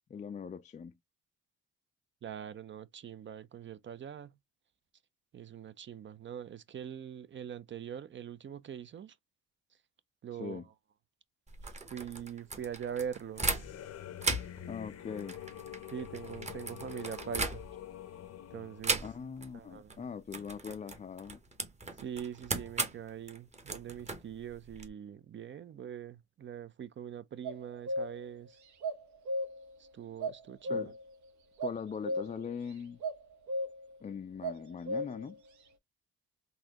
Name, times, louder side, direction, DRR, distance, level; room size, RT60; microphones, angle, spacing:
voice 1, 0.1-1.0 10.4-10.6 14.7-15.4 19.0-21.4 30.7-31.0 31.6-33.0 34.0-35.4, left 6 dB, 25° left, 0.4 m, -41 dB
voice 2, 2.2-4.4 5.3-9.2 10.2-10.7 11.6-13.5 15.9-17.6 18.5-19.0 19.5-20.0 22.0-28.6 29.8-30.9, right 9 dB, 40° right, 0.5 m, -43 dB
sound 1, 11.5-13.9 14.2-18.0 18.8-19.5 19.8-20.0 20.3-24.9, right 3 dB, 20° right, 0.9 m, -37 dB
sound 2, 13.3-18.8, left 11 dB, 55° left, 0.7 m, -46 dB
sound 3, 27.4-28.3 28.8-29.8 30.2-31.1 31.6-32.7 33.0-33.2 33.5-34.0 34.4-35.3, equal, 70° right, 1.0 m, -36 dB
4.1 x 2.7 x 2.8 m
cardioid pair, 90°, 30 cm